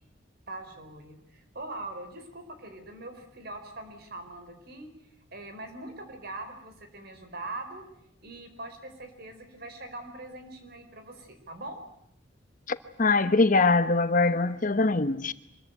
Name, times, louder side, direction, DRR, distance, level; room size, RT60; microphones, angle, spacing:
voice 1, 0.5-4.9 5.3-7.8 8.2-11.8 14.2-14.3, right 2 dB, 55° right, 4.5 m, -42 dB
voice 2, 12.7-15.3, left 3 dB, 45° left, 1.1 m, -23 dB
25.0 x 21.5 x 9.3 m
head